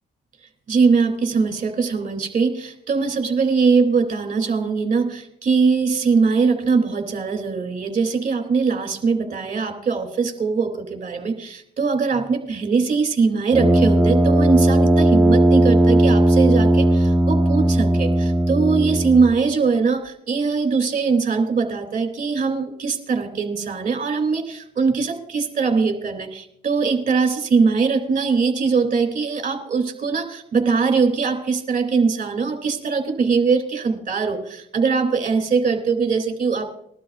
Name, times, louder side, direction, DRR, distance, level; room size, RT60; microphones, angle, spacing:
voice 1, 0.7-36.7, right 5 dB, 40° right, 5 dB, 2.6 m, -21 dB
Brass instrument, 13.5-19.4, right 1 dB, 5° right, 1.0 m, -17 dB
20.0 x 12.5 x 2.4 m, 0.72 s
cardioid pair, 90°, 20 cm